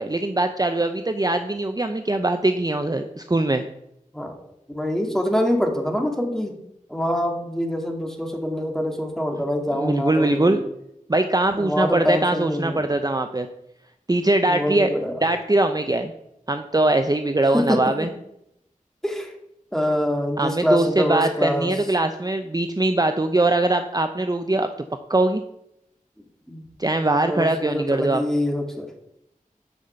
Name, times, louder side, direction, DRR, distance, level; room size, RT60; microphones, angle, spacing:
voice 1, 0.0-3.6 9.7-10.6 11.1-13.5 14.1-14.9 15.2-16.1 16.5-18.1 20.4-24.7 25.1-25.4 26.8-28.2, right 2 dB, 25° right, 7 dB, 0.6 m, -22 dB
voice 2, 4.7-6.6 6.9-10.6 11.5-12.9 14.5-15.1 17.5-17.9 19.0-19.3 19.7-21.7 26.5-26.7 27.2-28.9, left 1 dB, 5° left, 3 dB, 2.1 m, -25 dB
9.6 x 5.6 x 6.8 m, 0.81 s
wide cardioid pair, 50°, 14 cm